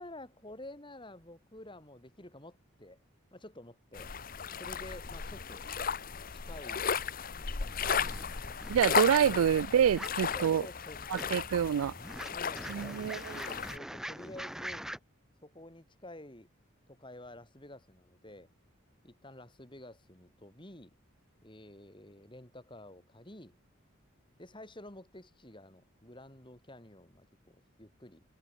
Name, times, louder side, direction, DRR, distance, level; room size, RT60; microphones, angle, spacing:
voice 1, 0.0-3.0 3.3-4.1 4.5-5.7 6.3-7.8 9.1-9.5 10.3-11.4 12.3-14.9 15.4-16.5 16.9-18.5 19.0-20.9 21.4-23.6 24.4-28.2, left 1 dB, 25° left, 3.5 m, -50 dB
sound 1, 3.9-13.8, left 6 dB, 40° left, 0.9 m, -35 dB
sound 2, 7.7-15.0, equal, ahead, 2.2 m, -45 dB
voice 2, 8.7-10.6 11.1-11.9 12.7-13.2, right 8 dB, 85° right, 0.3 m, -27 dB
head